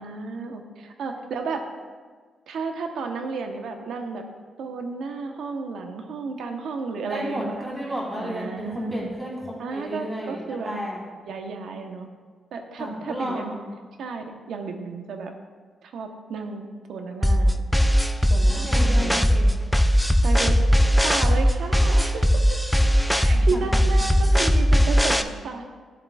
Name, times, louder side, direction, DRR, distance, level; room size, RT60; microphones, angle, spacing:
voice 1, 0.0-1.6 2.5-4.3 4.6-7.7 8.2-9.0 9.6-10.7 11.3-12.1 12.5-13.5 14.0-15.3 15.8-17.6 18.3-19.3 20.2-20.6 21.0-22.6 23.1-25.6, right 4 dB, 80° right, 4 dB, 0.9 m, -32 dB
voice 2, 7.1-11.0 12.8-13.6 18.3-19.6 23.5-23.8, equal, 15° right, -5 dB, 2.8 m, -32 dB
sound 1, 17.2-25.2, equal, ahead, 0.3 m, -19 dB
14.5 x 7.4 x 2.3 m, 1.5 s
wide cardioid pair, 165°, 0 cm